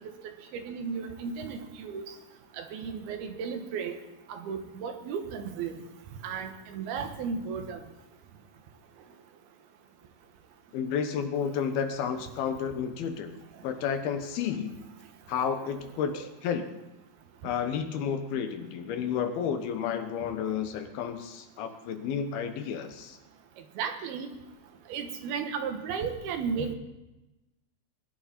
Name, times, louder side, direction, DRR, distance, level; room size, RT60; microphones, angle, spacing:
voice 1, 0.5-2.0 2.6-4.0 4.3-5.8 6.2-7.8 16.0-16.3 23.8-24.3 24.9-26.8, right 6 dB, 85° right, 6 dB, 3.2 m, -34 dB
voice 2, 10.7-13.3 13.6-14.7 15.3-16.6 17.4-23.2, left 7 dB, 80° left, 7 dB, 3.0 m, -31 dB
21.0 x 11.5 x 4.4 m, 0.99 s
omnidirectional pair, 4.3 m